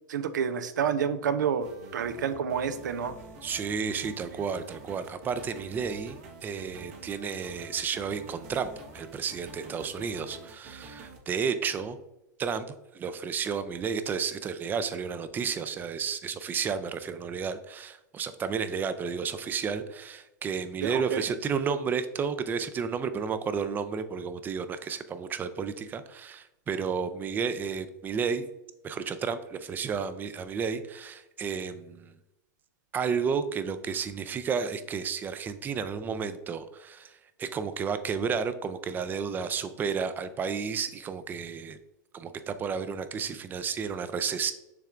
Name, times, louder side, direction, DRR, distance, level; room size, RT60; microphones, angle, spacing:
voice 1, 0.1-3.1 20.8-21.2, right 7 dB, 90° right, 12 dB, 0.5 m, -29 dB
sound 1, 1.6-11.2, right 3 dB, 60° right, 1.1 m, -47 dB
voice 2, 3.4-12.0 12.4-12.7 12.9-28.4 28.8-32.1 32.9-41.8 42.1-44.5, right 6 dB, 20° right, 11 dB, 0.4 m, -32 dB
6.7 x 3.2 x 2.4 m, 0.88 s
hypercardioid pair, 125°, 10 cm